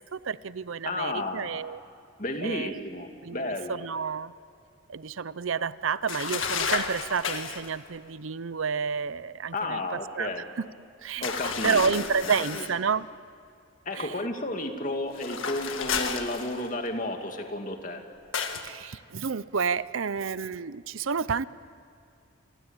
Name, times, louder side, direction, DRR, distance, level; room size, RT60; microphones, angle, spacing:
voice 1, 0.0-1.8 2.4-2.8 3.2-4.3 4.9-10.7 11.0-13.1 13.9-14.1 18.6-21.4, right 6 dB, 75° right, 17 dB, 0.6 m, -30 dB
voice 2, 0.8-1.6 2.2-3.7 9.5-10.4 11.2-11.8 12.5-12.7 13.9-18.0, left 2 dB, 40° left, 4 dB, 2.4 m, -32 dB
sound 1, 6.1-7.7 11.2-12.8 15.1-16.9 18.3-18.7, left 6 dB, 70° left, 1.8 m, -31 dB
29.0 x 23.0 x 8.9 m, 2.4 s
head